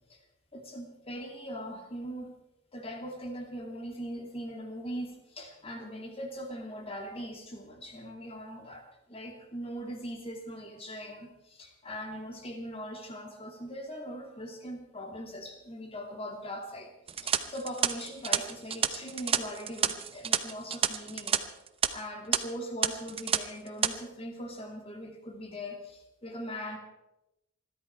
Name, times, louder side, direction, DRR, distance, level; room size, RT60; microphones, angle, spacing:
voice 1, 0.5-2.4 2.7-16.9 17.2-21.4 21.9-26.8, equal, 25° left, 2 dB, 2.6 m, -40 dB
sound 1, 17.1-21.4 21.7-21.9 22.3-22.4 22.8-23.4 23.7-23.9, right 8 dB, 25° right, 0.8 m, -29 dB
21.5 x 13.5 x 4.5 m, 0.94 s
head